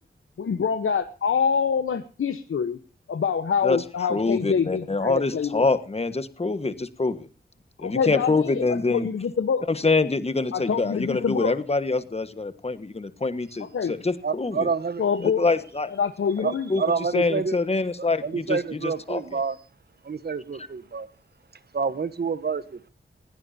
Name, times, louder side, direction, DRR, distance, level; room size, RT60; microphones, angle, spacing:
voice 1, 0.4-2.8 3.1-5.6 7.8-9.6 10.5-11.5 13.6-14.0 15.0-15.4 16.0-16.7, left 6 dB, 85° left, 1.0 m, -25 dB
voice 2, 4.1-7.3 7.8-9.1 9.7-14.7 15.2-15.9 16.4-19.4, left 3 dB, 30° left, 1.4 m, -25 dB
voice 3, 14.2-15.0 16.4-17.6 18.2-19.6 20.0-21.1 21.7-22.9, right 5 dB, 50° right, 1.1 m, -28 dB
20.5 x 16.5 x 2.7 m
wide cardioid pair, 125°, 21 cm